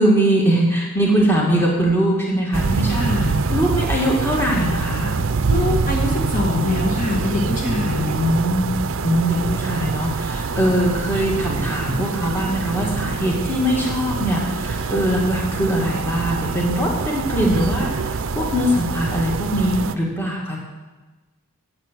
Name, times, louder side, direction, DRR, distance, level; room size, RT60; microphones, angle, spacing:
voice 1, 0.0-5.1 7.8-8.7 9.0-20.6, equal, 10° left, -3 dB, 2.0 m, -21 dB
sound 1, 2.5-19.9, right 4 dB, 60° right, 0.5 m, -25 dB
voice 2, 2.9-3.4 5.5-8.2, left 2 dB, 35° left, -1 dB, 1.8 m, -24 dB
11.0 x 7.5 x 7.4 m, 1.2 s
head